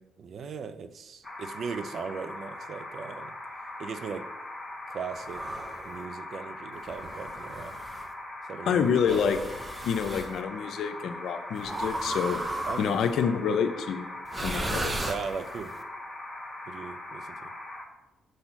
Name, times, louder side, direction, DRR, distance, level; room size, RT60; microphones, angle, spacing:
voice 1, 0.2-3.3 3.8-4.3 4.9-5.4 5.8-7.8 8.4-9.3 12.7-13.3 15.1-15.7 16.7-17.5, right 5 dB, 55° right, 12 dB, 0.5 m, -38 dB
sound 1, 1.2-17.9, left 1 dB, 5° left, 1.3 m, -41 dB
sound 2, 5.2-5.9 6.9-8.1 9.0-10.3 11.6-13.2 14.3-15.7, right 1 dB, 20° right, 0.7 m, -35 dB
voice 2, 8.7-9.4 9.8-12.4 12.8-14.1 14.4-14.9, left 7 dB, 70° left, 8 dB, 0.6 m, -27 dB
6.4 x 4.3 x 5.8 m, 1.0 s
cardioid pair, 90°, 0 cm